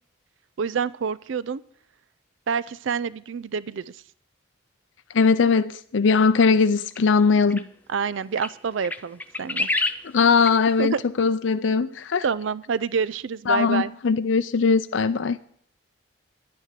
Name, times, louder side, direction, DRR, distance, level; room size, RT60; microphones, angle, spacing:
voice 1, 0.6-1.6 2.5-4.0 7.9-9.7 10.8-11.0 12.2-13.9, right 6 dB, 75° right, 0.4 m, -27 dB
voice 2, 5.1-7.6 10.1-12.2 13.5-15.4, left 5 dB, 75° left, 0.5 m, -20 dB
sound 1, 6.9-7.0 7.5-7.6 8.4-8.5 8.8-10.1 10.5-10.6, left 2 dB, 10° left, 0.5 m, -27 dB
11.0 x 9.4 x 7.5 m
head